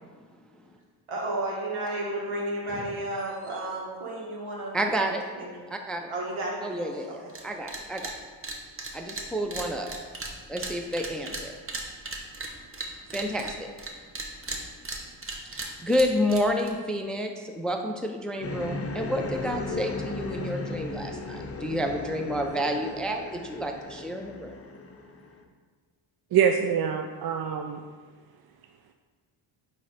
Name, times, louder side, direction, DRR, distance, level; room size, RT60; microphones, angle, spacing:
voice 1, 1.1-4.8 5.4-5.5 6.1-7.0, right 1 dB, 75° right, -3 dB, 1.9 m, -32 dB
voice 2, 4.7-5.2 5.7-6.1 6.6-8.2 8.9-9.9 10.5-11.6 13.1-13.7 15.4-24.6, equal, ahead, 4 dB, 0.5 m, -30 dB
sound 1, 7.3-7.4 7.7-8.1 8.4-13.9 14.2-16.7, right 2 dB, 25° right, 1.1 m, -36 dB
sound 2, 18.4-25.4, left 3 dB, 30° left, 0.8 m, -36 dB
voice 3, 26.3-27.8, right 8 dB, 50° right, 5 dB, 0.5 m, -25 dB
8.5 x 3.4 x 4.2 m, 1.5 s
cardioid pair, 70°, 49 cm